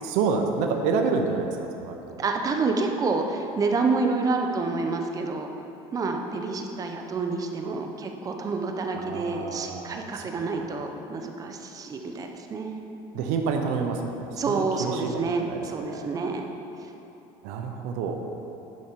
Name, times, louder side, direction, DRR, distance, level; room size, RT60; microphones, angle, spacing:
voice 1, 0.0-2.0 8.9-10.3 10.6-10.7 13.1-16.1 17.4-18.3, right 5 dB, 75° right, 3 dB, 0.8 m, -28 dB
voice 2, 2.2-5.5 5.9-12.8 14.4-16.4 16.8-16.9, right 4 dB, 30° right, 4 dB, 0.8 m, -28 dB
10.5 x 5.3 x 4.6 m, 3.0 s
cardioid pair, 125°, 12 cm